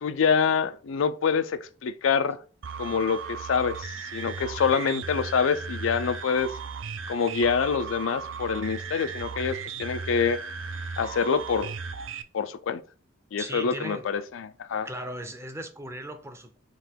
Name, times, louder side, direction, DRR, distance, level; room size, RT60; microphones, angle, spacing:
voice 1, 0.0-2.4 2.8-6.5 7.1-10.4 11.0-11.7 12.3-12.8 13.3-14.9, left 6 dB, 80° left, 0.4 m, -26 dB
sound 1, 2.6-12.2, right 5 dB, 75° right, 0.4 m, -36 dB
voice 2, 13.4-14.2 14.8-16.6, right 1 dB, 15° right, 0.5 m, -37 dB
3.8 x 2.9 x 4.4 m
head